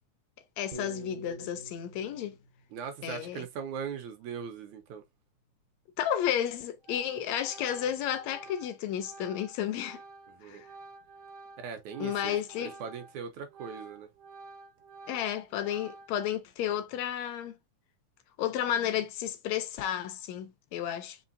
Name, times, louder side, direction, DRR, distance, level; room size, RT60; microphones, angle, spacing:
voice 1, 0.6-2.4 3.0-3.5 6.0-10.0 10.4-10.7 12.0-12.7 15.1-17.5 18.4-21.2, left 10 dB, 75° left, 1.7 m, -32 dB
Piano, 0.7-5.1, left 1 dB, 40° right, 0.6 m, -47 dB
voice 2, 2.7-5.0 10.3-10.6 11.6-14.1, right 7 dB, 75° right, 2.1 m, -40 dB
Organ, 6.3-6.5 6.8-13.2 13.5-16.4, right 3 dB, 90° right, 2.5 m, -50 dB
5.5 x 3.1 x 2.6 m
omnidirectional pair, 3.5 m